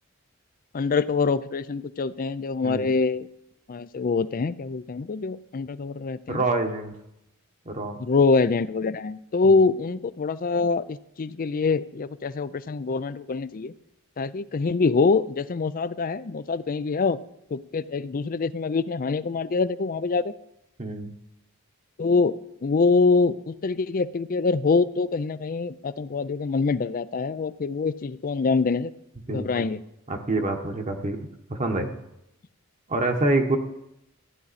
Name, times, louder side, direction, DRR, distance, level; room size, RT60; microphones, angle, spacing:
voice 1, 0.7-3.3 3.7-6.4 8.0-13.7 14.2-17.2 17.5-20.3 22.0-22.4 22.6-28.9 29.3-29.8, left 4 dB, 40° left, 15 dB, 0.4 m, -24 dB
voice 2, 6.3-6.9 7.7-8.0 9.4-9.5 20.8-21.1 29.3-29.7 30.1-31.2 31.5-31.9 32.9-33.6, right 2 dB, 35° right, 4 dB, 1.1 m, -26 dB
14.5 x 9.9 x 4.2 m, 0.84 s
head